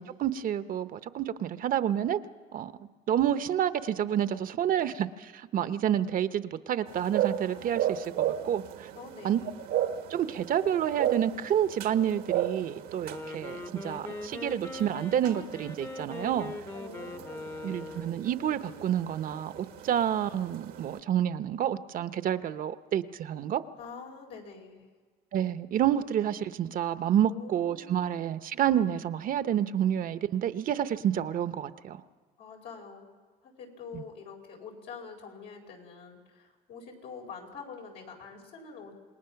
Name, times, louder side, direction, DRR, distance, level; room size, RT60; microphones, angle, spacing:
voice 1, 0.0-2.2 2.5-2.7 3.1-8.9 9.2-9.4 10.1-16.5 17.6-23.6 25.3-32.0 33.9-34.0, right 10 dB, 55° right, 12 dB, 0.8 m, -29 dB
sound 1, 6.9-21.0, right 11 dB, 90° right, 1.5 m, -35 dB
voice 2, 8.9-9.5 16.7-17.5 23.8-24.8 27.2-28.1 32.4-33.1 33.4-38.9, left 5 dB, 85° left, 0 dB, 4.6 m, -45 dB
Wind instrument woodwind instrument, 13.0-18.2, left 2 dB, 15° left, 0.8 m, -41 dB
27.5 x 19.5 x 5.8 m, 1.5 s
cardioid pair, 110°, 17 cm